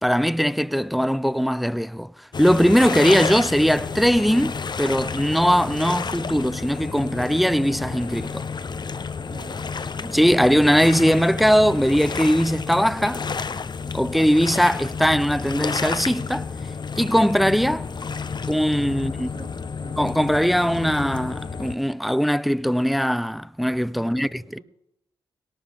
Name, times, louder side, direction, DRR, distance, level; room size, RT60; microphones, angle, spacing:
voice 1, 0.0-2.1 2.4-8.5 10.0-13.3 13.9-16.5 17.0-17.9 18.5-19.3 20.0-24.3, equal, ahead, 0.4 m, -20 dB
sound 1, 2.3-21.8, left 5 dB, 45° left, 0.8 m, -31 dB
voice 2, 9.2-9.7 18.9-20.0 24.0-24.6, right 2 dB, 50° right, 5.0 m, -44 dB
18.5 x 18.0 x 3.6 m
supercardioid pair, 50°, 10 cm